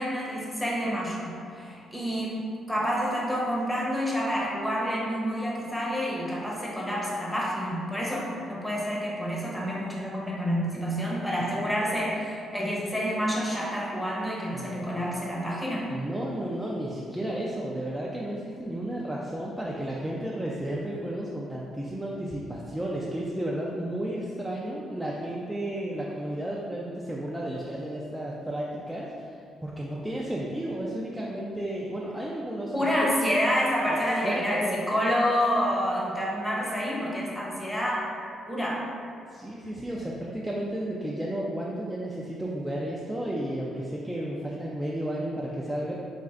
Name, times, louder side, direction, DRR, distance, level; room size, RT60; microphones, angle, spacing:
voice 1, 0.0-2.4 2.7-15.9 32.7-38.1 38.5-38.9, equal, 10° left, -4 dB, 0.7 m, -28 dB
voice 2, 14.5-14.9 15.9-32.7 33.9-34.0 34.2-34.8 39.3-45.9, right 1 dB, 5° right, -5 dB, 0.3 m, -33 dB
4.1 x 2.4 x 2.4 m, 2.4 s
cardioid pair, 90°, 0 cm